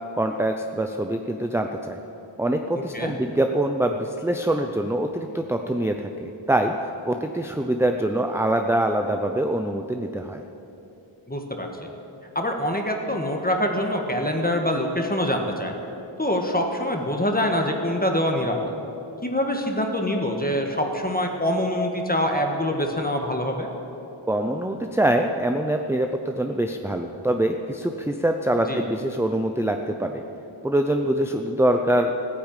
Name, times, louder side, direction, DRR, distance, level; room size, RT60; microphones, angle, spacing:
voice 1, 0.1-2.0 2.4-6.7 7.0-10.4 24.3-30.2 30.6-32.1, right 1 dB, 5° right, 4 dB, 0.6 m, -24 dB
voice 2, 11.3-11.9 12.3-15.7 16.2-18.7 19.2-23.7 28.7-28.8, left 1 dB, 20° left, 2 dB, 1.6 m, -25 dB
15.5 x 9.9 x 9.1 m, 2.9 s
wide cardioid pair, 105°, 49 cm